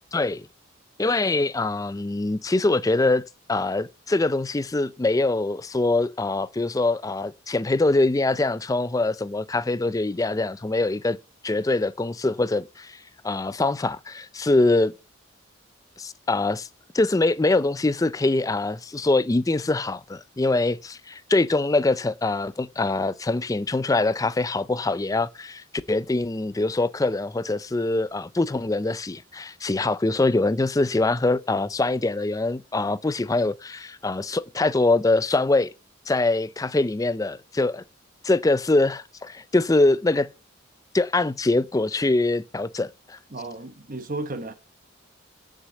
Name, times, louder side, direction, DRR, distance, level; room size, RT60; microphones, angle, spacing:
voice 1, 0.1-0.5 1.0-3.2 3.5-11.2 11.4-13.0 13.2-14.9 16.0-16.7 16.9-35.7 36.1-37.8 38.2-40.3 40.9-43.2, left 2 dB, 15° left, 0.4 m, -23 dB
voice 2, 43.3-44.5, right 2 dB, 40° right, 1.2 m, -33 dB
6.5 x 6.4 x 7.4 m
head